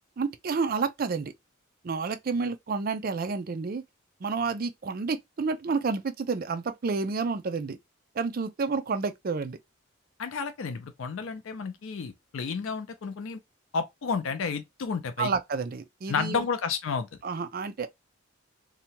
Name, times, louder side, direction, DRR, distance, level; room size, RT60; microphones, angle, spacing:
voice 1, 0.2-1.3 1.8-3.8 4.2-7.8 8.1-9.6 15.2-16.5 17.2-17.9, right 4 dB, 45° right, 0.4 m, -30 dB
voice 2, 10.2-13.4 13.7-15.3 16.1-17.1, left 5 dB, 65° left, 0.4 m, -31 dB
2.7 x 2.2 x 2.8 m
head